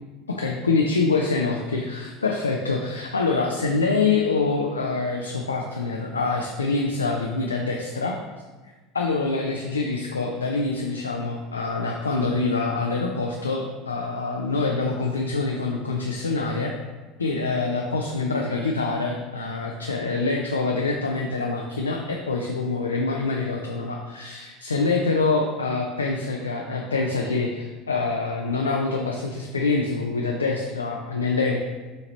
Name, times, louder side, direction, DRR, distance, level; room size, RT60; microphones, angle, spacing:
voice 1, 0.3-8.2 8.9-16.7 17.2-31.6, left 3 dB, 90° left, 1 dB, 0.3 m, -25 dB
4.3 x 2.8 x 4.0 m, 1.3 s
hypercardioid pair, 75°, 0 cm